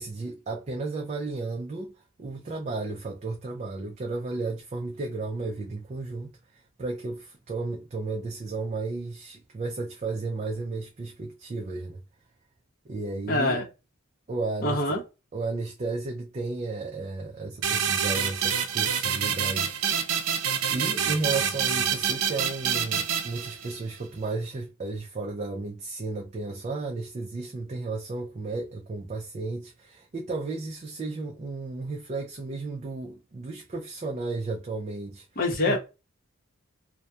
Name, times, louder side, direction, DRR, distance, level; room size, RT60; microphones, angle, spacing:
voice 1, 0.0-1.9 2.2-12.0 12.9-13.6 14.3-15.0 15.3-19.7 20.7-35.3 35.7-35.8, right 3 dB, 30° right, 0.3 m, -33 dB
voice 2, 13.3-13.6 14.6-15.0 35.4-35.8, left 2 dB, 40° left, 0.7 m, -24 dB
sound 1, 17.6-24.0, right 8 dB, 90° right, 0.5 m, -27 dB
2.3 x 2.1 x 2.6 m
head